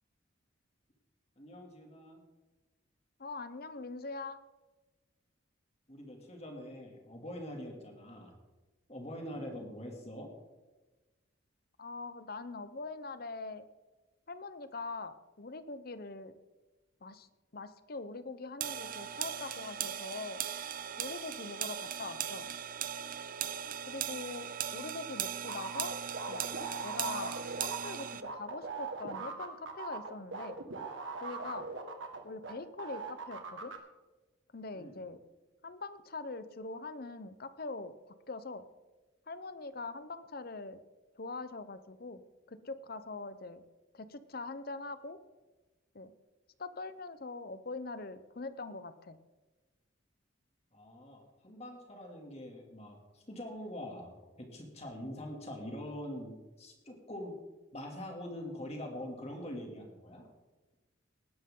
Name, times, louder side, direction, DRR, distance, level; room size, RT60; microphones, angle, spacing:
voice 1, 1.4-2.2 5.9-8.3 8.9-10.3 34.7-35.0 50.7-57.3 57.7-60.3, left 1 dB, 30° left, 1 dB, 2.8 m, -44 dB
voice 2, 3.2-4.4 9.3-9.5 11.8-13.7 14.3-16.4 17.0-20.4 21.0-22.5 23.9-25.9 26.3-26.4 26.8-30.6 31.2-31.7 32.2-33.7 34.5-35.2 35.6-38.7 39.3-40.8 41.1-42.2 42.5-43.6 43.9-45.2 45.9-46.1 46.6-49.2, left 3 dB, 50° left, 13 dB, 0.8 m, -43 dB
sound 1, 18.6-28.2, right 9 dB, 45° right, 0.6 m, -38 dB
sound 2, 25.5-32.5 32.8-33.8, right 4 dB, 75° right, 1.8 m, -40 dB
19.5 x 11.0 x 3.9 m, 1.2 s
head